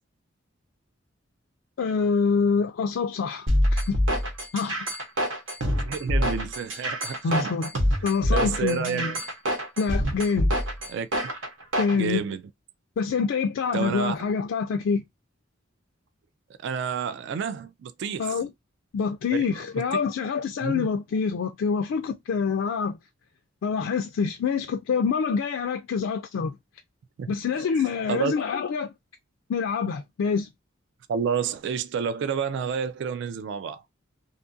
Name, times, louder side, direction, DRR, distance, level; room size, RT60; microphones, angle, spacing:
voice 1, 1.8-4.0 4.5-4.9 7.2-7.7 8.0-9.1 9.8-10.5 11.8-12.2 13.0-15.0 18.2-18.5 18.9-23.0 23.6-26.6 27.3-28.9 29.5-30.5, left 5 dB, 70° left, 0.3 m, -26 dB
sound 1, 3.5-12.0, equal, 85° right, 1.0 m, -25 dB
voice 2, 5.8-7.5 8.3-9.2 10.9-11.3 11.9-12.4 13.7-14.1 16.6-18.4 19.5-19.8 20.6-20.9 27.2-27.3 28.1-28.3 31.1-33.8, right 6 dB, 65° right, 0.3 m, -29 dB
2.7 x 2.4 x 2.5 m
head